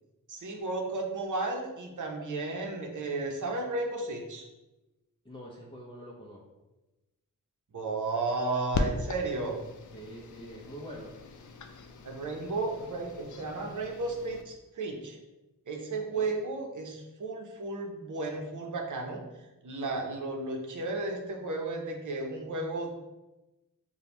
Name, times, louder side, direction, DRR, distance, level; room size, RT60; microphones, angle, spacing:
voice 1, 0.3-4.4 7.7-9.6 12.0-15.2 15.7-19.2 19.6-22.9, right 3 dB, 65° right, 1 dB, 0.8 m, -33 dB
voice 2, 5.2-6.4 9.9-11.2 16.1-16.3, equal, 15° left, -5 dB, 0.6 m, -45 dB
sound 1, 8.7-14.4, left 3 dB, 65° left, 0.5 m, -38 dB
5.1 x 2.3 x 2.9 m, 1.0 s
cardioid pair, 65°, 33 cm